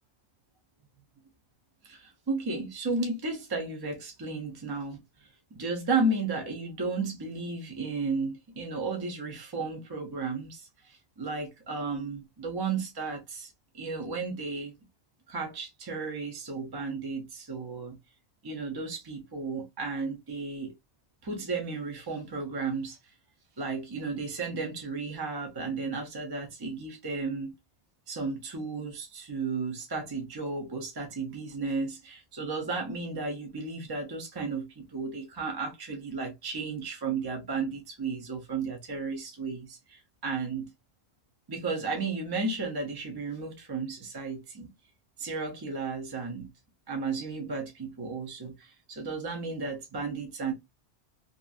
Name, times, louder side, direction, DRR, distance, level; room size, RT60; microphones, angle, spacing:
voice 1, 1.8-14.7 15.3-18.0 18.4-20.7 21.2-23.0 23.6-27.5 28.1-40.7 41.5-44.7 45.2-46.5 46.9-50.5, right 3 dB, 35° right, 0.4 m, -34 dB
2.8 x 2.5 x 2.3 m
omnidirectional pair, 1.1 m